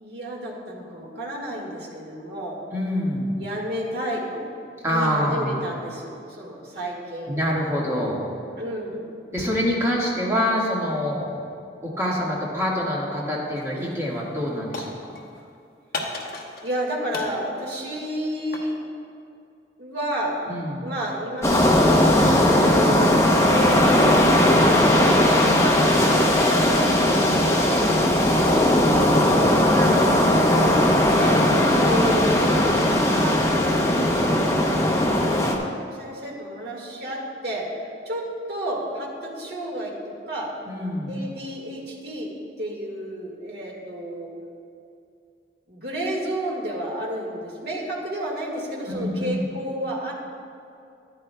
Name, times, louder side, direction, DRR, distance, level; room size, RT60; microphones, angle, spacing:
voice 1, 0.0-2.6 3.4-4.5 4.9-7.3 8.6-9.0 16.6-18.8 19.8-20.4 20.8-22.0 22.3-28.7 29.2-30.5 31.1-37.8 38.1-40.5 41.1-42.3 42.6-44.3 45.7-50.1, equal, 65° right, -2 dB, 1.8 m, -31 dB
voice 2, 2.7-3.4 4.8-5.6 7.3-8.2 9.3-11.3 11.8-14.9 20.5-20.9 25.4-25.7 40.7-41.2 48.9-49.4, equal, 15° right, -5 dB, 1.6 m, -25 dB
sound 1, 13.6-13.9 14.1-15.4 15.9-16.8 17.1-18.8, left 3 dB, 55° left, 1.0 m, -35 dB
sound 2, 21.4-35.5, left 1 dB, 15° left, 0.7 m, -18 dB
13.5 x 10.0 x 2.2 m, 2.5 s
head